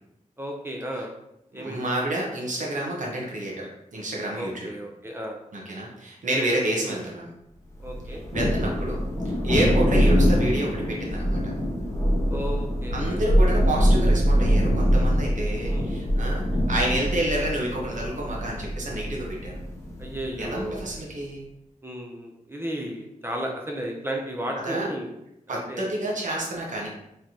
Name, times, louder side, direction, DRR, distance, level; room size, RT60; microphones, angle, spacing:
voice 1, 0.4-1.1 1.5-1.9 4.4-5.4 6.6-6.7 7.8-8.2 12.3-13.2 15.7-16.0 20.0-20.8 21.8-25.1 25.5-25.9, right 1 dB, 15° right, 0 dB, 0.6 m, -34 dB
voice 2, 1.5-4.7 5.5-7.3 8.1-11.4 12.9-19.6 20.4-21.4 24.6-24.9 25.5-26.9, right 1 dB, 70° right, -3 dB, 0.9 m, -29 dB
Thunder, 7.8-21.0, equal, 20° left, 1.1 m, -24 dB
3.8 x 3.2 x 2.9 m, 0.84 s
cardioid pair, 65°, 14 cm